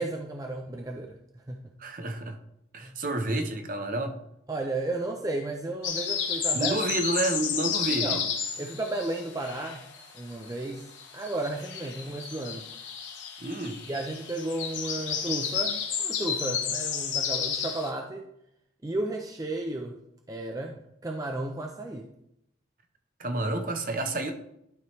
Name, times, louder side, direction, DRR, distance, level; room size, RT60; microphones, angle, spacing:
voice 1, 0.0-1.7 2.8-2.9 4.5-6.8 8.0-8.3 8.6-9.9 10.1-12.6 13.9-18.3 18.8-20.0 20.3-22.1, right 2 dB, 20° right, 2 dB, 0.4 m, -33 dB
voice 2, 1.8-2.4 2.7-4.1 6.5-8.2 13.4-13.8 23.2-24.3, right 2 dB, 45° right, 5 dB, 0.8 m, -29 dB
sound 1, 5.8-10.2 10.4-17.9, left 7 dB, 80° left, 1.1 m, -32 dB
11.5 x 4.6 x 3.1 m, 0.80 s
head